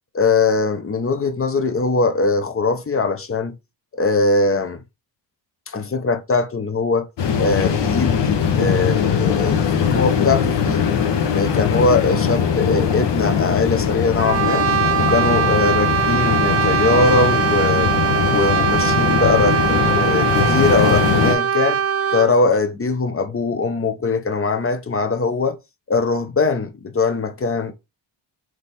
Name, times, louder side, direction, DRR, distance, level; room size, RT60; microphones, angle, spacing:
voice 1, 0.1-3.5 4.0-4.8 5.7-7.1 7.4-9.6 9.9-11.0 11.3-14.6 15.0-17.9 18.2-21.8 22.1-25.6 25.9-27.7, left 3 dB, 30° left, 0.8 m, -21 dB
sound 1, 7.2-21.4, left 7 dB, 65° left, 1.1 m, -20 dB
Brass instrument, 14.2-22.4, right 9 dB, 30° right, 0.5 m, -21 dB
3.5 x 3.2 x 4.1 m
cardioid pair, 85°, 47 cm